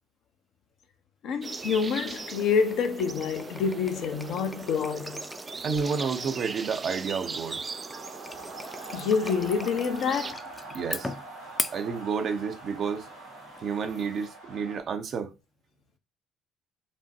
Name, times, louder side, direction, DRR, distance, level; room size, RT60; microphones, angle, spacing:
voice 1, 1.2-5.3 8.9-10.4, left 6 dB, 60° left, 0.8 m, -27 dB
sound 1, 1.4-10.3, right 4 dB, 35° right, 0.3 m, -40 dB
sound 2, 1.6-14.3, left 2 dB, 15° left, 0.6 m, -41 dB
sound 3, 2.1-14.8, right 3 dB, 90° right, 1.3 m, -46 dB
voice 2, 5.6-7.6 10.7-11.1 11.7-13.1 13.6-15.3, right 5 dB, 50° right, 0.7 m, -30 dB
6.0 x 2.2 x 2.9 m
hypercardioid pair, 50°, 0 cm